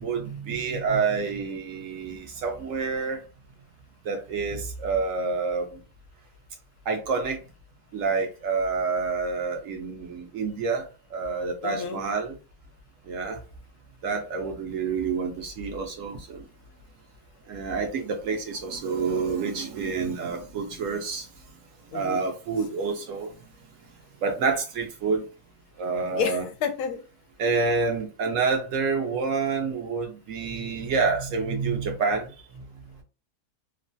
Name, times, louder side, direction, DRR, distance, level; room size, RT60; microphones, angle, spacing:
voice 1, 0.0-3.2 4.0-5.8 6.9-7.4 7.9-12.4 13.1-13.4 14.0-16.5 17.5-21.3 21.9-23.3 24.2-25.3 25.8-26.4 27.4-32.3, right 4 dB, 65° right, 0.9 m, -28 dB
voice 2, 11.6-12.0 21.9-22.2 26.1-27.0, left 7 dB, 80° left, 1.1 m, -30 dB
3.1 x 2.2 x 2.5 m
omnidirectional pair, 1.7 m